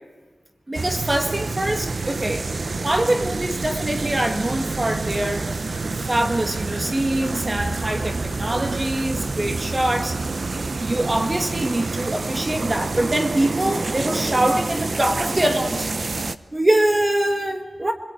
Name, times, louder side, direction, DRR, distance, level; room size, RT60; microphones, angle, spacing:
voice 1, 0.7-2.5 2.8-5.5 5.8-10.2 10.8-15.9 16.5-17.9, right 1 dB, 25° right, 5 dB, 1.9 m, -23 dB
sound 1, 0.7-16.4, right 3 dB, 55° right, 0.9 m, -28 dB
28.5 x 21.0 x 9.2 m, 1.3 s
wide cardioid pair, 95°, 0 cm